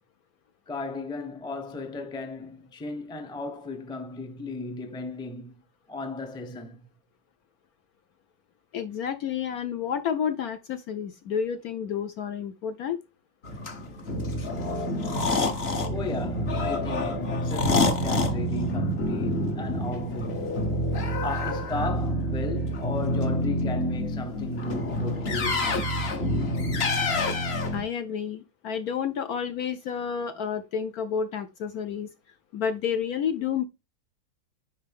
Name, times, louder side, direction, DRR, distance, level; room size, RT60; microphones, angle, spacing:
voice 1, 0.7-5.5 5.9-6.8 14.8-15.6 15.9-20.5 21.2-25.9, left 3 dB, 5° left, 0.5 m, -35 dB
voice 2, 8.7-13.0 27.7-32.1 32.5-33.6, left 7 dB, 65° left, 1.0 m, -30 dB
sound 1, 13.4-27.8, left 1 dB, 40° left, 1.1 m, -27 dB
10.0 x 3.5 x 3.5 m
omnidirectional pair, 2.1 m